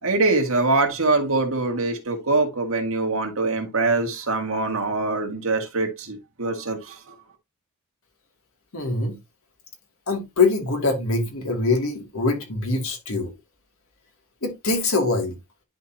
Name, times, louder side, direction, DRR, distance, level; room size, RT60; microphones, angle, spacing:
voice 1, 0.0-7.0, right 3 dB, 65° right, 1.8 m, -23 dB
voice 2, 8.7-9.2 10.1-13.3 14.4-15.3, left 3 dB, 65° left, 2.3 m, -23 dB
11.0 x 4.2 x 2.7 m
head